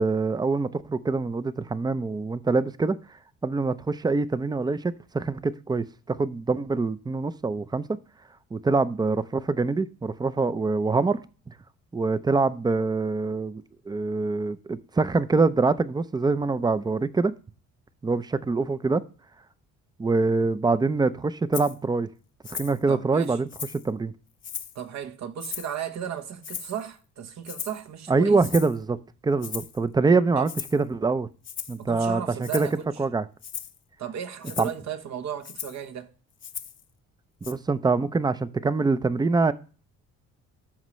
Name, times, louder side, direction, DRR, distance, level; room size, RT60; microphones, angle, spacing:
voice 1, 0.0-3.0 3.4-8.0 8.5-11.2 11.5-11.6 11.9-17.3 18.0-19.0 20.0-22.1 22.5-23.5 23.8-24.1 28.1-29.0 29.2-31.3 31.7-32.7 33.0-33.2 34.6-34.7 37.5-39.5, right 3 dB, 15° right, 0.5 m, -24 dB
Rattle (instrument), 21.5-21.8 22.4-22.8 23.2-23.9 24.4-24.8 25.4-25.8 26.4-26.9 27.5-27.8 28.4-28.8 29.4-29.8 30.5-30.8 31.4-31.8 32.4-32.8 33.4-33.8 34.4-34.8 35.4-35.8 36.4-36.8 37.4-37.5, left 8 dB, 40° left, 0.8 m, -37 dB
voice 2, 22.9-23.4 24.7-28.5 30.3-30.5 31.8-32.9 34.0-36.1, right 9 dB, 60° right, 1.2 m, -35 dB
13.0 x 5.0 x 3.1 m
cardioid pair, 90°, 30 cm